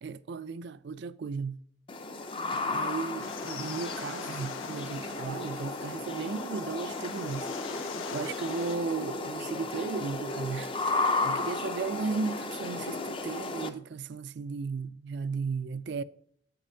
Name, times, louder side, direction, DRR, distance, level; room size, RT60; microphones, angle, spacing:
voice 1, 0.0-1.6 2.7-16.0, right 4 dB, 55° right, 0.3 m, -35 dB
sound 1, 1.9-13.7, left 3 dB, 25° left, 0.5 m, -34 dB
sound 2, 3.2-8.8, left 8 dB, 80° left, 0.5 m, -44 dB
8.2 x 6.5 x 2.7 m
head